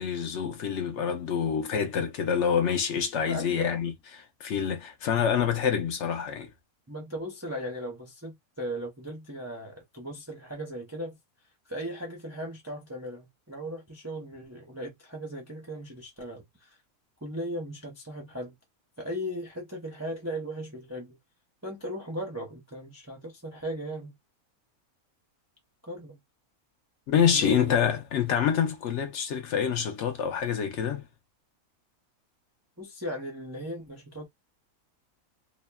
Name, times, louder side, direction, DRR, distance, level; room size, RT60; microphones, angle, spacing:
voice 1, 0.0-6.5 27.1-31.1, left 7 dB, 60° left, 0.9 m, -27 dB
voice 2, 3.2-3.7 6.9-11.2 11.7-16.8 17.2-18.6 19.0-21.2 21.6-24.2 25.8-26.2 27.2-28.0 32.8-34.3, equal, 25° right, 0.3 m, -37 dB
2.9 x 2.2 x 2.2 m
omnidirectional pair, 1.5 m